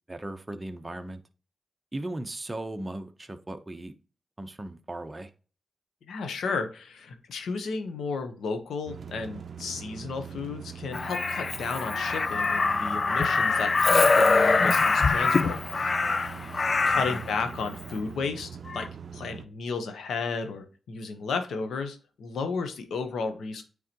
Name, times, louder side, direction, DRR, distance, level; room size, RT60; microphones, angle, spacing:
voice 1, 0.1-1.2 1.9-3.9 4.4-5.3 16.9-17.2, right 1 dB, 20° right, 0.9 m, -37 dB
voice 2, 6.1-16.0 16.9-18.9 19.1-23.6, left 4 dB, 85° left, 1.1 m, -33 dB
sound 1, 8.9-19.4, right 7 dB, 65° right, 0.5 m, -42 dB
Crow, 10.9-17.3 18.7-18.9, left 3 dB, 50° left, 0.5 m, -24 dB
9.0 x 3.8 x 3.0 m
cardioid pair, 65°, 0 cm